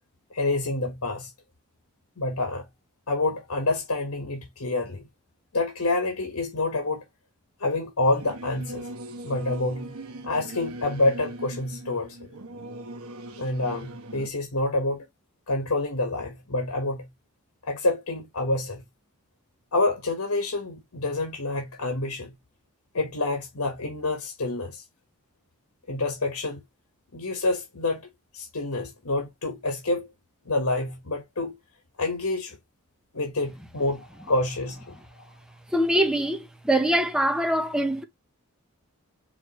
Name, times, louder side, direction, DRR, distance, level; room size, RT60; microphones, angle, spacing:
voice 1, 0.3-1.3 2.2-2.7 3.1-5.1 5.5-7.0 7.6-8.9 9.2-9.9 10.2-12.2 13.4-15.1 15.5-17.1 17.6-18.8 19.7-22.3 22.9-24.8 25.9-26.6 27.1-28.1 28.3-30.1 30.4-31.5 32.0-32.6 33.1-35.2, left 2 dB, 80° left, 1.4 m, -27 dB
Singing / Musical instrument, 8.1-14.3, right 1 dB, 80° right, 0.9 m, -40 dB
voice 2, 35.7-38.0, right 1 dB, 5° right, 0.7 m, -23 dB
5.0 x 3.1 x 3.0 m
head